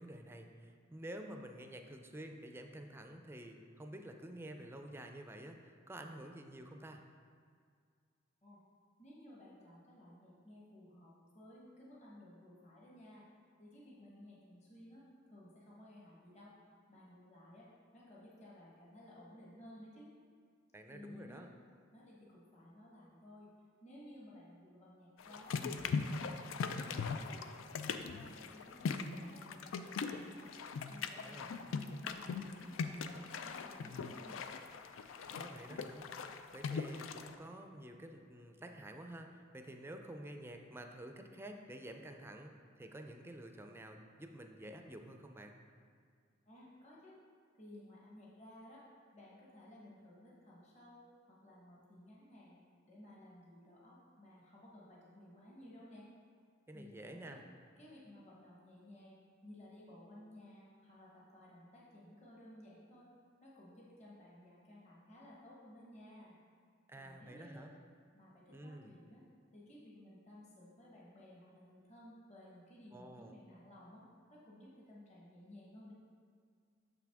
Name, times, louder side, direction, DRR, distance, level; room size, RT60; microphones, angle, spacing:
voice 1, 0.0-7.0 20.7-21.5 31.2-31.5 35.3-36.1 36.5-45.5 56.7-57.4 66.9-67.7 68.5-68.9 72.9-73.3, right 1 dB, 10° right, 4 dB, 0.4 m, -50 dB
voice 2, 9.0-13.2 13.6-16.5 16.9-17.7 17.9-20.1 20.9-21.5 21.9-23.5 23.8-30.5 30.9-34.4 46.4-47.2 47.5-48.9 49.1-56.1 56.7-57.4 57.8-63.1 63.4-66.3 67.0-67.7 68.1-69.2 69.5-74.0 74.3-75.9, left 1 dB, 35° left, -6 dB, 1.2 m, -57 dB
sound 1, 25.2-37.4, left 5 dB, 85° left, 0.4 m, -40 dB
6.9 x 6.0 x 3.5 m, 2.1 s
head